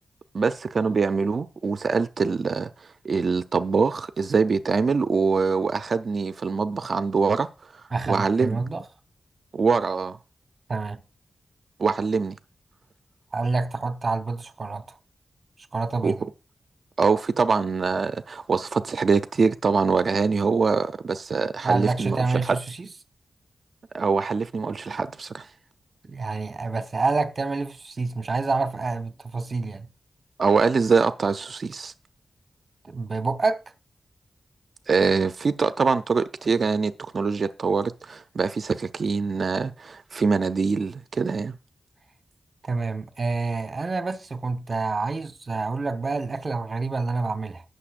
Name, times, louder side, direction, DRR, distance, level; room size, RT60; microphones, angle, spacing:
voice 1, 0.3-7.5 8.1-8.6 9.5-10.2 11.8-12.4 16.0-16.1 17.0-22.6 23.9-25.5 30.4-31.9 34.9-41.5, right 4 dB, 60° right, 0.6 m, -24 dB
voice 2, 7.9-8.8 10.7-11.0 13.3-15.0 15.7-16.3 21.6-22.9 26.0-29.9 32.8-33.6 42.6-47.6, right 3 dB, 40° right, 1.1 m, -27 dB
18.5 x 6.6 x 2.5 m
wide cardioid pair, 105°, 0 cm